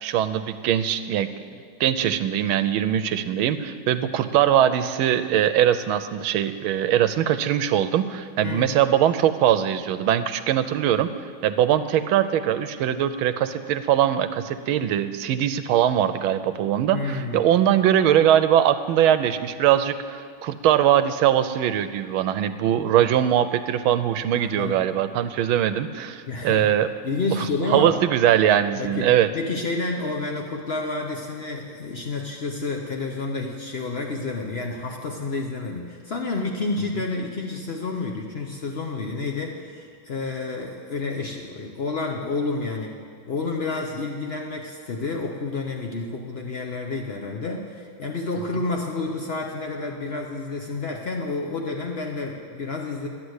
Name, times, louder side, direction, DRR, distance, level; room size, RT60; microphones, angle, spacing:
voice 1, 0.0-1.3 1.8-11.1 11.4-26.9 27.4-29.3, right 10 dB, 80° right, 11 dB, 1.4 m, -21 dB
voice 2, 8.4-8.7 16.9-17.5 24.4-24.9 26.3-26.7 27.0-28.0 28.8-43.0 43.2-53.1, left 3 dB, 80° left, 1 dB, 0.5 m, -30 dB
12.0 x 9.8 x 8.0 m, 2.1 s
omnidirectional pair, 2.4 m